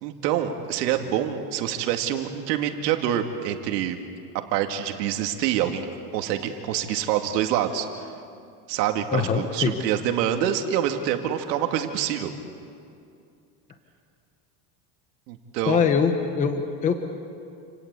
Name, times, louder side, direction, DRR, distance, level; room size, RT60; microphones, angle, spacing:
voice 1, 0.0-4.0 4.5-5.8 6.1-8.1 8.7-12.3 15.3-15.8, right 10 dB, 85° right, 5 dB, 2.5 m, -26 dB
voice 2, 9.1-9.7 15.7-16.9, left 6 dB, 15° left, 6 dB, 1.0 m, -23 dB
28.5 x 18.5 x 8.4 m, 2.4 s
cardioid pair, 170°, 48 cm